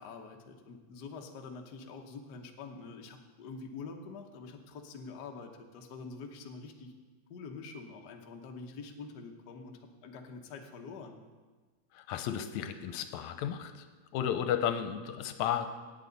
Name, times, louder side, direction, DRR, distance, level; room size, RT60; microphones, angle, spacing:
voice 1, 0.0-6.9 7.3-11.2, left 4 dB, 65° left, 3 dB, 1.0 m, -46 dB
voice 2, 11.9-13.9 14.1-15.7, left 9 dB, 85° left, 9 dB, 2.0 m, -33 dB
17.5 x 8.3 x 4.0 m, 1.4 s
omnidirectional pair, 3.3 m